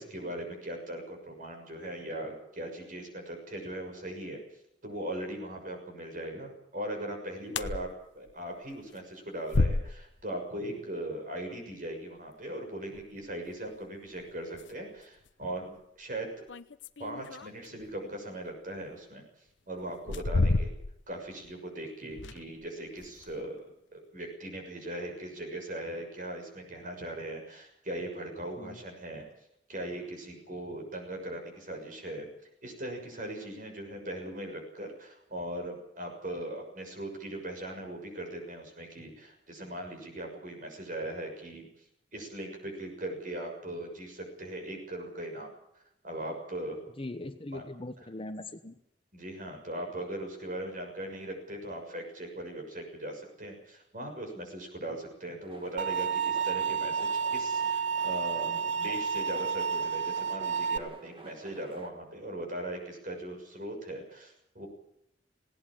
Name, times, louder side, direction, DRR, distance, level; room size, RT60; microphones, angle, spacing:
voice 1, 0.0-4.4 4.8-7.9 8.1-16.4 17.0-19.2 19.7-20.7 21.1-29.3 29.7-32.3 32.6-41.7 42.1-45.5 46.0-46.8 47.5-47.6 49.1-58.5 58.8-64.7, right 1 dB, 45° right, 4 dB, 6.5 m, -39 dB
sound 1, 7.5-7.9 8.3-8.4 9.5-10.2 12.9-13.0 14.1-14.2 14.5-14.7 15.3-15.4 16.5-17.9 18.9-19.0 19.9-21.1 21.4-21.5 22.1-22.7 23.0-23.4, left 2 dB, 85° left, 0.8 m, -30 dB
voice 2, 47.0-48.8 58.4-58.9, left 2 dB, 30° left, 10 dB, 1.0 m, -41 dB
sound 2, 55.4-61.9, right 2 dB, 30° right, 2.2 m, -51 dB
sound 3, 55.8-60.8, right 6 dB, 75° right, 1.0 m, -30 dB
19.5 x 18.0 x 8.8 m, 0.77 s
head